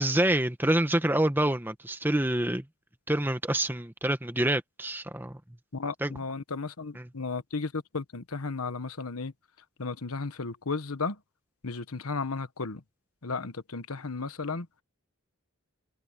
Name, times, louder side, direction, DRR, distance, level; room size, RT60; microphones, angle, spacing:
voice 1, 0.0-2.7 3.1-5.4 6.0-6.1 7.0-7.1, right 1 dB, 10° right, 1.2 m, -27 dB
voice 2, 5.7-9.3 9.8-11.2 11.6-12.8 13.2-14.7, left 4 dB, 80° left, 1.3 m, -34 dB
head